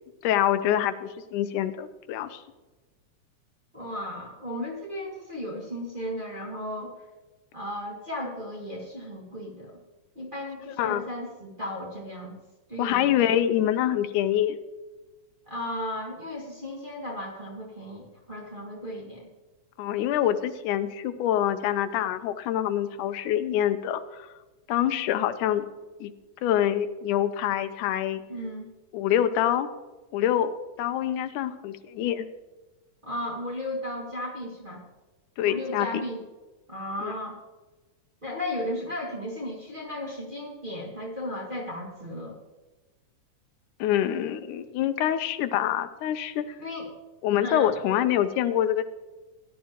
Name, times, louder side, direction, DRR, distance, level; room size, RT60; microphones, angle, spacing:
voice 1, 0.2-2.4 10.8-11.1 12.8-14.6 19.8-24.3 24.7-25.7 26.0-26.1 26.4-28.2 28.9-29.7 30.1-32.3 35.4-36.0 37.0-37.1 43.8-46.5 47.2-48.9, left 11 dB, 90° left, 11 dB, 2.2 m, -25 dB
voice 2, 3.7-6.9 7.5-9.8 10.1-12.4 12.7-13.1 15.5-19.3 28.3-28.7 33.0-34.8 35.4-36.2 36.7-37.4 38.2-42.4 46.6-46.9 47.4-47.7, left 1 dB, 20° right, -5 dB, 1.8 m, -35 dB
16.5 x 11.5 x 2.9 m, 1.2 s
omnidirectional pair, 3.5 m